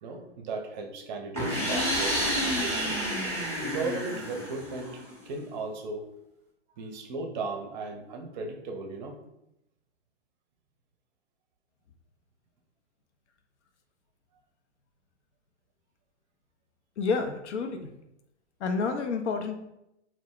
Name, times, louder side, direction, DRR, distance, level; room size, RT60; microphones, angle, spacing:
voice 1, 0.0-2.9 3.6-6.0 6.8-9.2, right 3 dB, 40° right, 2 dB, 0.5 m, -36 dB
sound 1, 1.3-5.1, equal, 5° left, 0.6 m, -29 dB
voice 2, 17.0-17.9 18.6-19.5, left 4 dB, 70° left, 7 dB, 0.5 m, -29 dB
2.4 x 2.0 x 3.5 m, 0.85 s
hypercardioid pair, 115°, 36 cm